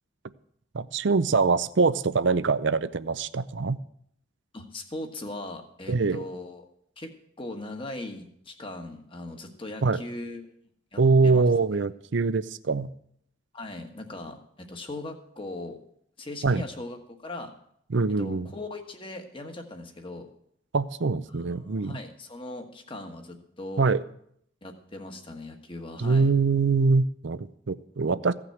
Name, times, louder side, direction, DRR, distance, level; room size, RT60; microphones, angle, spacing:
voice 1, 0.7-3.8 5.9-6.2 9.8-10.0 11.0-12.9 16.4-16.6 17.9-18.5 20.7-22.0 23.8-24.0 26.0-28.3, right 4 dB, 60° right, 14 dB, 0.5 m, -23 dB
voice 2, 4.5-6.6 7.0-7.1 7.4-10.5 10.9-11.4 13.5-15.8 16.2-17.5 18.2-20.3 21.3-23.8 24.6-26.3, left 2 dB, 25° left, 4 dB, 1.4 m, -39 dB
16.0 x 6.0 x 7.9 m, 0.69 s
head